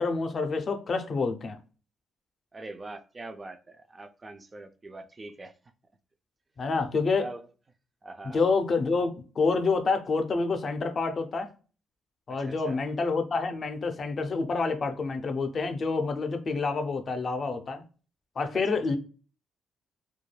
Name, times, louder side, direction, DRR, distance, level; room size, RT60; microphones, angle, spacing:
voice 1, 0.0-1.6 6.6-7.3 8.2-11.5 12.3-17.8 18.4-19.0, left 4 dB, 45° left, 0.5 m, -28 dB
voice 2, 2.5-5.5 7.2-7.4 8.0-8.4 12.3-12.8 18.5-18.6, right 2 dB, 25° right, 0.3 m, -43 dB
2.3 x 2.2 x 3.1 m
cardioid pair, 90°, 0 cm